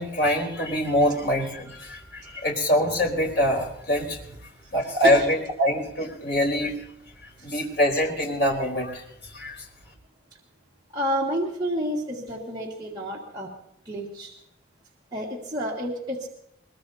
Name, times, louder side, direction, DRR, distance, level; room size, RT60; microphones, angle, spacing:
voice 1, 0.0-4.2 4.7-6.8 7.2-9.0 9.3-9.7, equal, 70° left, -1 dB, 4.1 m, -24 dB
voice 2, 10.9-13.5 13.9-14.3 15.1-16.3, equal, 25° right, -5 dB, 2.0 m, -29 dB
23.0 x 21.0 x 2.8 m, 0.73 s
head